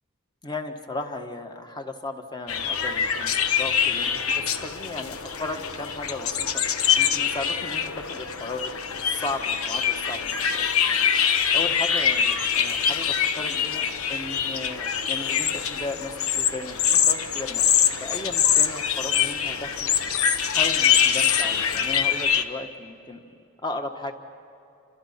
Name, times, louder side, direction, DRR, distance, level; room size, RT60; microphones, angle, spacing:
voice 1, 0.4-6.5 7.0-17.6 18.0-23.2 23.6-24.1, left 2 dB, 20° left, 5 dB, 1.4 m, -36 dB
sound 1, 2.5-22.4, left 8 dB, 80° left, 1.1 m, -24 dB
30.0 x 27.0 x 5.8 m, 2.8 s
head